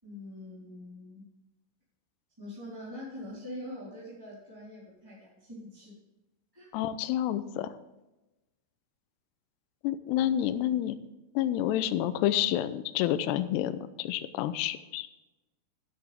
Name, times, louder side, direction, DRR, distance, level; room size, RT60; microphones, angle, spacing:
voice 1, 0.0-1.2 2.4-6.0 6.5-6.7, left 1 dB, 5° right, -9 dB, 3.4 m, -44 dB
voice 2, 6.7-7.7 9.8-11.0 11.4-15.1, left 12 dB, 80° left, 11 dB, 2.5 m, -29 dB
12.5 x 11.0 x 3.5 m, 1.0 s
omnidirectional pair, 5.5 m